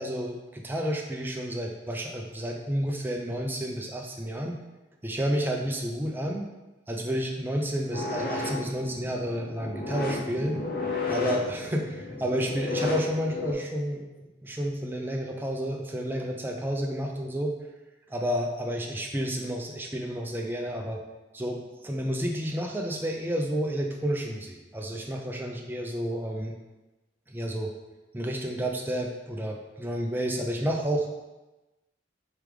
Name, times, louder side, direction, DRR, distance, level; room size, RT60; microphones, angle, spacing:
voice 1, 0.0-4.6 5.0-6.5 6.9-10.6 11.1-17.5 18.1-21.0 21.3-26.6 27.3-27.7 28.1-31.1, equal, 10° right, 1 dB, 0.4 m, -30 dB
sound 1, 7.9-13.5, left 3 dB, 50° left, 0.6 m, -33 dB
4.7 x 3.4 x 3.2 m, 1.1 s
head